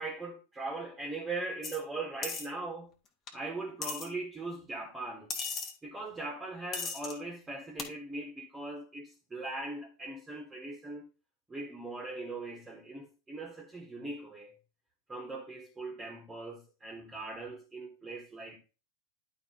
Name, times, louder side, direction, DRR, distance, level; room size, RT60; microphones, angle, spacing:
voice 1, 0.0-2.9 3.3-5.3 5.8-11.0 11.5-14.5 15.1-18.6, right 2 dB, 10° right, 1.6 m, -40 dB
sound 1, 1.6-1.8 2.2-2.5 3.3-3.4 3.8-4.1 5.3-5.7 6.7-7.1 7.8-7.9, left 4 dB, 25° left, 1.8 m, -36 dB
11.0 x 4.5 x 4.0 m
figure-of-eight pair, 90°, 0 cm